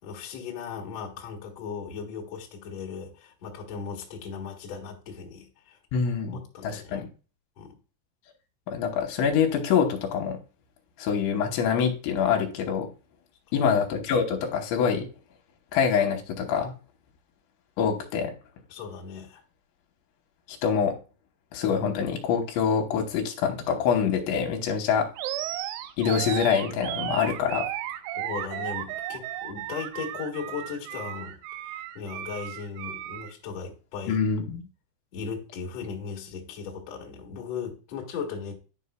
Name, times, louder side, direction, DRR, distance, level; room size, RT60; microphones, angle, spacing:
voice 1, 0.0-5.8 6.3-7.1 7.6-7.8 13.5-13.8 18.7-19.4 28.1-34.2 35.1-38.6, left 6 dB, 55° left, 1.9 m, -37 dB
voice 2, 5.9-7.1 8.7-10.4 11.0-12.9 13.5-15.1 15.7-16.7 17.8-18.3 20.5-21.0 21.5-25.1 26.0-27.7 34.1-34.6, left 7 dB, 75° left, 3.2 m, -25 dB
Animal, 25.2-33.3, right 12 dB, 90° right, 3.2 m, -34 dB
10.0 x 5.4 x 2.2 m
omnidirectional pair, 5.3 m